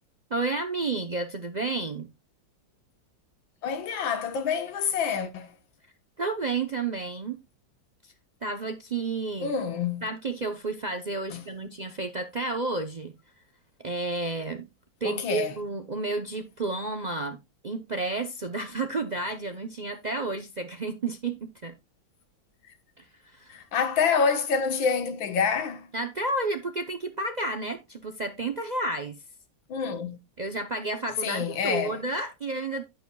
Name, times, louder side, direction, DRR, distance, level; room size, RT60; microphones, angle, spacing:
voice 1, 0.3-2.1 6.2-7.4 8.0-8.1 8.4-9.6 10.0-13.1 13.8-14.7 15.0-21.7 23.0-23.6 25.9-29.2 30.4-32.8, right 3 dB, 65° right, 0.4 m, -31 dB
voice 2, 3.6-5.5 9.4-10.0 11.3-11.4 15.0-15.5 23.5-25.9 29.7-30.2 31.2-31.9, left 6 dB, 85° left, 2.0 m, -27 dB
11.0 x 9.2 x 2.3 m
omnidirectional pair, 2.1 m